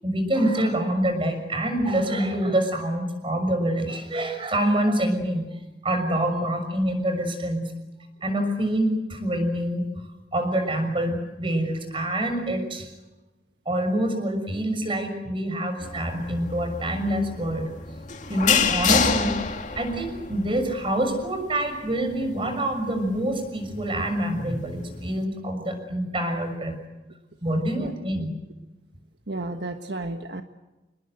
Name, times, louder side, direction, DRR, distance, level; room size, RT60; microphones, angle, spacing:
voice 1, 0.0-5.4 5.8-7.7 8.2-9.8 10.3-12.9 13.6-17.7 18.3-19.4 19.8-26.7 27.4-28.3, right 1 dB, 30° right, 7 dB, 6.4 m, -26 dB
sound 1, 15.8-25.2, left 6 dB, 45° left, 2.3 m, -29 dB
voice 2, 29.3-30.4, right 2 dB, 75° right, 6 dB, 1.4 m, -32 dB
28.5 x 20.5 x 8.0 m, 1.1 s
head